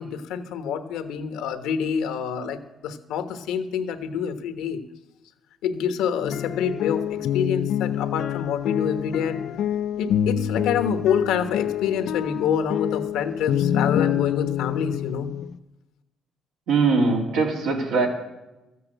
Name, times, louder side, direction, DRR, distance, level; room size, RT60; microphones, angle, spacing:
voice 1, 0.0-4.8 5.6-9.5 10.0-15.3, left 7 dB, 85° left, 8 dB, 1.1 m, -27 dB
sound 1, 6.2-15.6, left 10 dB, 70° left, 0.5 m, -26 dB
voice 2, 16.7-18.1, right 4 dB, 85° right, -1 dB, 3.0 m, -21 dB
13.5 x 8.3 x 8.0 m, 1.0 s
cardioid pair, 80°, 0 cm